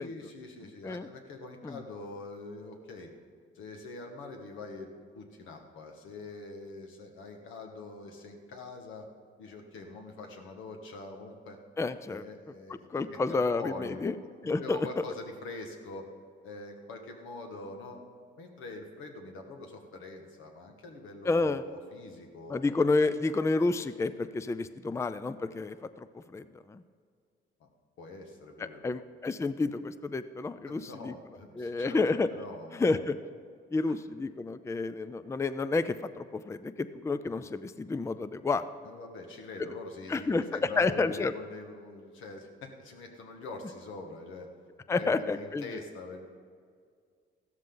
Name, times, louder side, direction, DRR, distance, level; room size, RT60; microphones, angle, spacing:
voice 1, 0.0-3.1 3.5-9.1 9.4-11.6 12.1-14.1 14.4-16.1 16.4-18.0 18.4-22.7 27.6-27.7 28.0-28.9 30.7-33.0 38.8-44.5 44.9-46.3, left 3 dB, 85° left, 3 dB, 1.7 m, -44 dB
voice 2, 11.8-12.2 12.9-14.1 14.4-15.0 21.3-21.6 22.5-26.8 28.6-31.1 31.6-32.3 32.7-33.2 33.7-38.7 40.1-40.4 40.8-41.3 44.9-45.6, left 3 dB, 15° left, 13 dB, 0.4 m, -30 dB
15.0 x 13.0 x 3.9 m, 2.1 s
cardioid pair, 90°, 20 cm